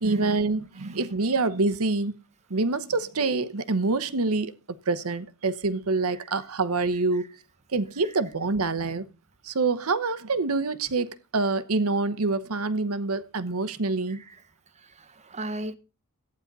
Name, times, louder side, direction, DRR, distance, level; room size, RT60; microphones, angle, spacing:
voice 1, 0.0-2.1 2.5-7.3 7.7-9.0 9.4-14.2, right 3 dB, 70° right, 1.0 m, -26 dB
voice 2, 14.1-14.4 14.7-15.7, right 1 dB, 30° right, 1.1 m, -38 dB
14.5 x 9.6 x 4.0 m
head